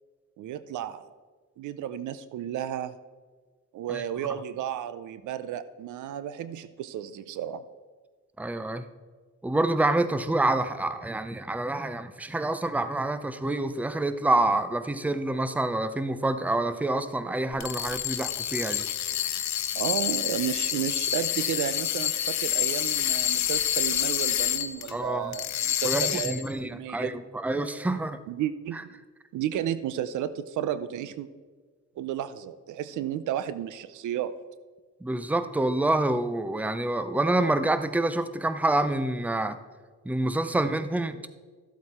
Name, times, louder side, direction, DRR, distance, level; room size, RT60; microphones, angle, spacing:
voice 1, 0.4-1.1 1.6-2.9 3.7-7.6 19.8-27.2 28.3-29.0 29.3-31.3 32.0-34.3, right 10 dB, 75° right, 14 dB, 0.6 m, -33 dB
voice 2, 8.4-8.8 9.4-18.8 24.9-25.4 25.8-28.2 28.7-28.8 35.0-39.6 40.0-41.2, right 2 dB, 5° right, 12 dB, 0.6 m, -27 dB
sound 1, 17.5-24.9 25.3-26.5, left 11 dB, 65° left, 0.9 m, -28 dB
13.5 x 7.9 x 4.3 m, 1.4 s
cardioid pair, 90°, 30 cm